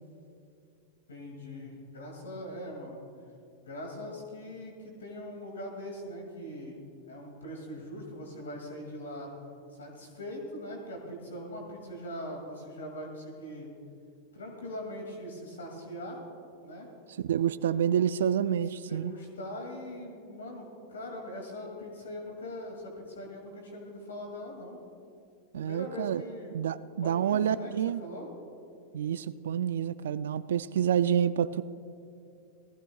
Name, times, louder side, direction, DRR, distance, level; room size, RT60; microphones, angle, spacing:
voice 1, 1.1-3.0 3.6-6.8 7.1-9.3 9.8-13.7 14.3-16.2 16.6-16.9 18.7-24.8 25.6-26.6 27.0-27.7 28.0-28.3, equal, 90° left, 0 dB, 2.3 m, -41 dB
voice 2, 17.3-19.1 25.5-26.2 26.5-28.0 28.9-31.6, right 9 dB, 80° right, 13 dB, 0.3 m, -28 dB
18.5 x 15.0 x 2.3 m, 2.6 s
hypercardioid pair, 105°, 0 cm